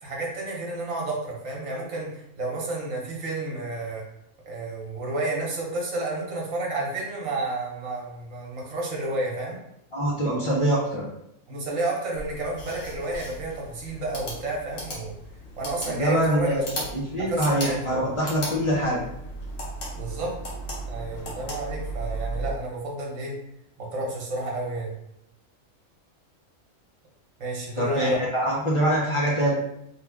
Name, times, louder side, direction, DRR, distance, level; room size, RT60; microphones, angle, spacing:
voice 1, 0.0-4.0 4.5-9.6 11.5-15.1 15.6-16.9 17.3-17.9 19.9-20.3 20.9-23.3 23.8-24.9 27.4-28.2, right 2 dB, 70° right, -2 dB, 1.3 m, -31 dB
voice 2, 9.9-11.0 15.9-16.6 16.9-19.0 27.8-29.5, equal, 40° left, -6 dB, 0.4 m, -24 dB
Mouse clicks, 12.1-22.5, right 1 dB, 65° left, 1.4 m, -36 dB
3.2 x 2.3 x 3.4 m, 0.79 s
omnidirectional pair, 1.4 m